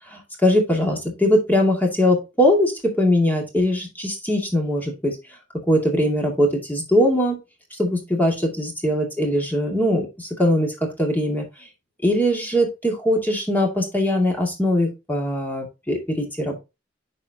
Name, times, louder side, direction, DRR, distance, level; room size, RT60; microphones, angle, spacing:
voice 1, 0.1-5.2 5.7-7.4 7.8-10.7 11.0-11.4 12.0-16.6, left 1 dB, 10° left, 0 dB, 2.2 m, -21 dB
9.7 x 4.8 x 2.9 m, 0.25 s
head